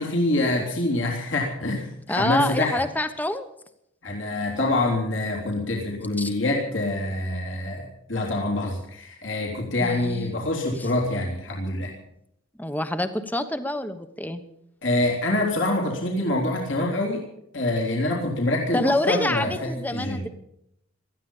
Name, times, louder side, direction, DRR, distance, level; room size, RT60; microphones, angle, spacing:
voice 1, 0.0-2.8 4.0-11.9 14.8-17.2 17.5-20.3, left 2 dB, 65° left, -1 dB, 3.5 m, -26 dB
voice 2, 2.1-3.5 6.2-6.3 9.8-10.4 10.8-10.9 12.6-14.4 18.7-20.3, left 1 dB, 10° left, 9 dB, 1.1 m, -27 dB
19.0 x 13.5 x 5.6 m, 0.77 s
head